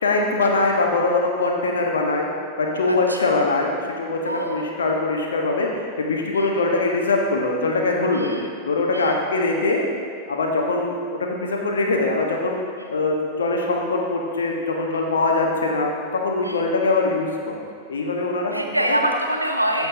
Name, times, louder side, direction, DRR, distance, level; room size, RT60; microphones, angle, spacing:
voice 1, 0.0-2.3 2.6-3.7 4.0-4.2 4.5-8.3 8.6-9.8 10.3-12.6 12.9-17.6 17.9-18.5 18.9-19.0, left 3 dB, 70° left, 0 dB, 1.2 m, -22 dB
voice 2, 2.9-3.4 4.2-4.7 6.3-6.5 8.1-8.5 8.9-9.2 12.8-12.9 16.4-16.6 18.5-19.9, right 1 dB, 85° right, 3 dB, 0.8 m, -25 dB
14.5 x 6.0 x 2.8 m, 2.2 s
figure-of-eight pair, 90°, 0 cm